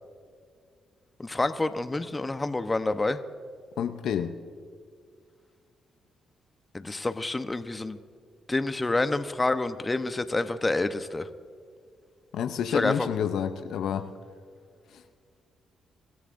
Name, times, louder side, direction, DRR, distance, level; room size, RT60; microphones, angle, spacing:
voice 1, 1.2-3.2 6.7-8.0 8.5-11.3 12.7-13.1, left 2 dB, 25° left, 10 dB, 0.9 m, -28 dB
voice 2, 3.8-4.3 12.3-14.1 14.9-15.0, left 8 dB, 75° left, 8 dB, 0.7 m, -29 dB
26.5 x 14.5 x 2.6 m, 2.1 s
supercardioid pair, 55°, 0 cm